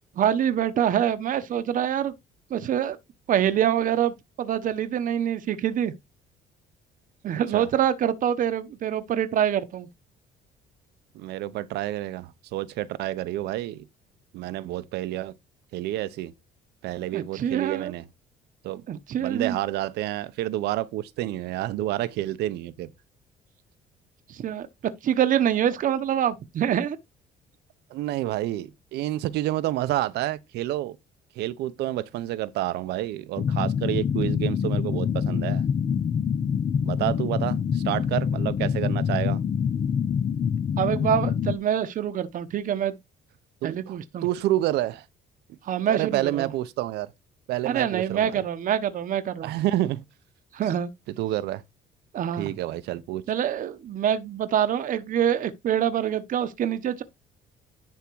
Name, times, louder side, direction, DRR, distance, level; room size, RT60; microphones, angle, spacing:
voice 1, 0.2-2.1 2.5-3.0 3.3-5.9 7.2-9.9 17.1-17.9 18.9-19.6 24.3-24.7 25.0-27.0 40.8-43.0 43.6-44.2 45.7-46.5 47.6-49.5 50.5-50.9 52.1-52.5 53.3-57.0, right 9 dB, 50° right, 0.9 m, -25 dB
voice 2, 11.1-13.8 14.3-15.3 15.7-16.3 16.8-18.0 18.6-18.8 19.2-22.9 27.9-31.0 31.3-35.6 36.8-39.4 43.6-45.0 45.9-47.1 47.5-48.4 49.4-50.0 51.1-51.6 52.4-53.2, right 14 dB, 80° right, 0.8 m, -29 dB
sound 1, 33.4-41.6, left 7 dB, 35° left, 0.6 m, -26 dB
10.5 x 3.7 x 4.6 m
cardioid pair, 110°, 17 cm